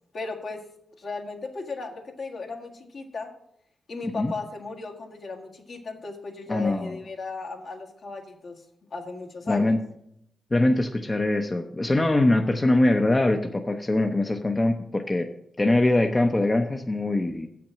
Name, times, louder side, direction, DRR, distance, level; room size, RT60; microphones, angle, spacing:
voice 1, 0.1-0.6 1.0-3.3 3.9-8.6 8.9-9.7, left 3 dB, 60° left, 1 dB, 1.6 m, -36 dB
voice 2, 6.5-7.0 9.5-9.8 10.5-15.3 15.6-17.5, left 2 dB, 25° left, 5 dB, 0.7 m, -22 dB
7.6 x 5.9 x 7.4 m, 0.76 s
cardioid pair, 75°, 0 cm